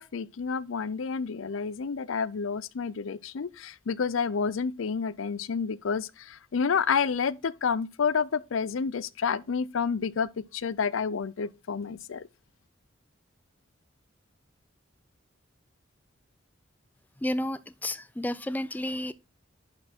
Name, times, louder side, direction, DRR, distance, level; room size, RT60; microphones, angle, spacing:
voice 1, 0.0-12.3, left 6 dB, 75° left, 0.5 m, -29 dB
voice 2, 17.2-19.1, left 1 dB, 10° left, 0.4 m, -31 dB
11.0 x 4.4 x 4.3 m
head